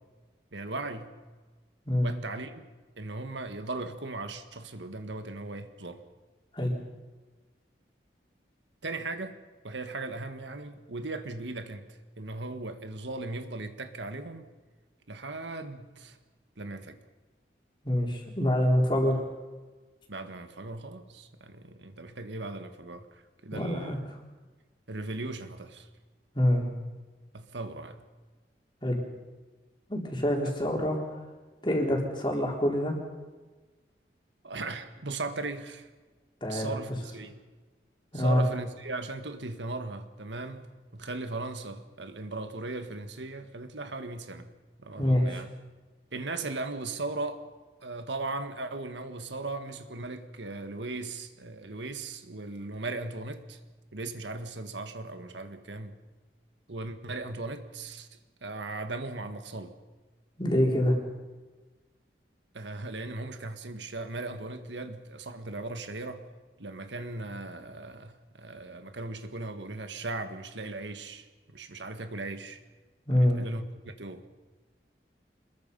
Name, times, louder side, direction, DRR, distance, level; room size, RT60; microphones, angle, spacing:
voice 1, 0.5-1.1 2.0-2.7 3.0-6.0 8.8-9.4 9.6-14.5 15.1-16.2 16.6-17.0 20.1-24.0 24.9-25.9 27.3-28.0 34.4-35.9 36.5-37.4 38.1-40.6 40.9-44.5 44.8-45.5 46.1-47.4 47.8-53.6 53.9-56.0 56.7-58.1 58.4-59.8 62.5-66.3 66.6-72.6 73.2-74.2, right 2 dB, 90° right, 8 dB, 1.7 m, -38 dB
voice 2, 17.8-19.2 23.5-24.0 26.3-26.7 28.8-29.0 29.9-31.0 31.6-33.0 36.4-36.7 38.1-38.4 45.0-45.4 60.4-61.0 73.1-73.4, left 1 dB, 25° left, 0 dB, 4.1 m, -25 dB
26.0 x 21.5 x 5.5 m, 1.3 s
head